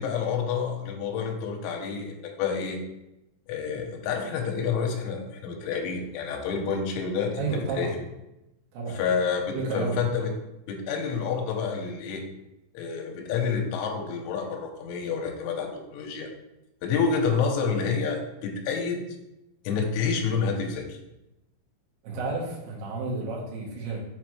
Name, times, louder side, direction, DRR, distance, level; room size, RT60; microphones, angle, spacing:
voice 1, 0.0-2.8 3.5-8.0 8.9-10.3 10.7-12.2 12.7-16.3 16.8-19.0 19.6-21.0, left 5 dB, 85° left, 2 dB, 3.2 m, -28 dB
voice 2, 7.4-8.0 8.7-9.0 9.5-10.0 22.0-24.0, right 3 dB, 70° right, -2 dB, 2.7 m, -31 dB
7.2 x 4.3 x 3.1 m, 0.91 s
omnidirectional pair, 5.7 m